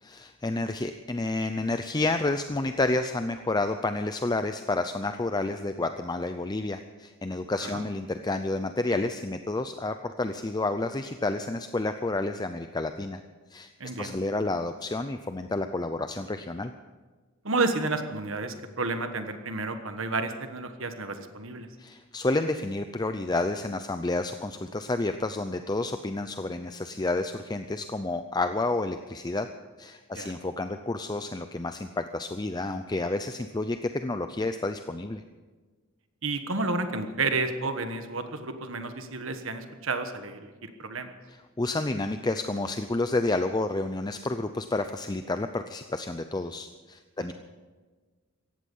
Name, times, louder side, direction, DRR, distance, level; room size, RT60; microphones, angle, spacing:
voice 1, 0.0-13.2 13.5-13.7 14.0-16.7 21.8-29.5 29.8-35.2 41.6-47.3, left 2 dB, 20° left, 8 dB, 0.5 m, -30 dB
voice 2, 13.8-14.2 17.4-21.7 30.1-30.3 36.2-41.1 47.2-47.3, right 3 dB, 65° right, 7 dB, 1.4 m, -31 dB
18.0 x 15.0 x 5.5 m, 1.4 s
head